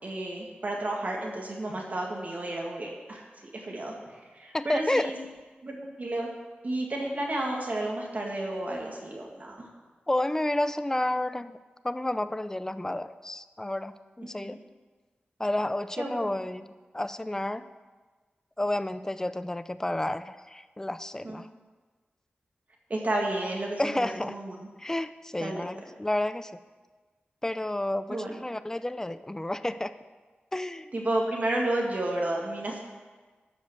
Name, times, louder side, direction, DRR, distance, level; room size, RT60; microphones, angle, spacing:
voice 1, 0.0-3.2 3.5-4.0 4.3-5.1 5.6-6.3 6.6-9.6 14.4-14.5 16.0-16.1 21.2-21.4 22.9-24.5 25.4-25.6 28.1-28.4 30.9-32.8, right 1 dB, 45° right, -1 dB, 1.8 m, -31 dB
voice 2, 4.5-5.1 10.1-11.6 11.8-14.6 15.4-17.6 18.6-21.5 23.8-24.4 24.8-26.5 27.4-29.9 30.5-30.9, left 1 dB, 15° left, 13 dB, 0.4 m, -30 dB
12.0 x 5.3 x 7.8 m, 1.4 s
wide cardioid pair, 110°, 4 cm